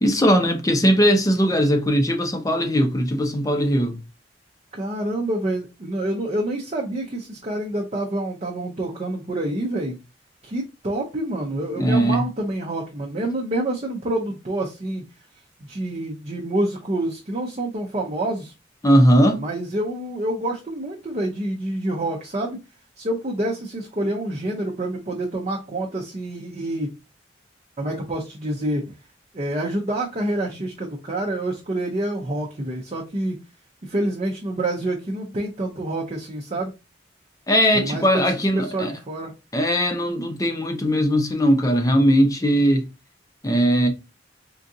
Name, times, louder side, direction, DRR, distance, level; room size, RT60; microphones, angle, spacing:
voice 1, 0.0-4.0 11.8-12.2 18.8-19.4 37.5-38.9 39.5-42.8 43.4-43.9, equal, 20° left, 0.6 m, -19 dB
voice 2, 4.7-10.0 10.4-15.0 15.6-18.5 19.3-22.6 23.0-26.9 27.8-28.9 29.3-33.4 33.8-36.7 37.7-39.3, right 1 dB, 35° right, 0.6 m, -27 dB
3.8 x 2.4 x 2.6 m
head